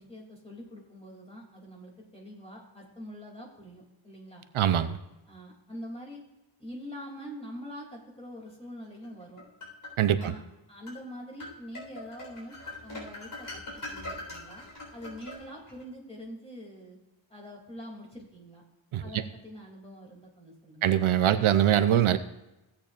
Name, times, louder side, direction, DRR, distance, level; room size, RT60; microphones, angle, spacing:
voice 1, 0.0-4.4 5.3-6.2 6.6-9.4 10.2-10.4 10.7-12.5 12.8-14.6 14.9-17.0 17.3-18.6 19.0-21.0, equal, 10° left, -2 dB, 2.8 m, -44 dB
voice 2, 4.5-5.0 10.0-10.3 18.9-19.2 20.8-22.2, right 10 dB, 80° right, 10 dB, 0.7 m, -23 dB
sound 1, 9.0-10.3 10.9-11.0 11.4-15.8, left 2 dB, 45° left, 4.0 m, -42 dB
16.0 x 8.7 x 2.5 m, 0.99 s
wide cardioid pair, 155°, 48 cm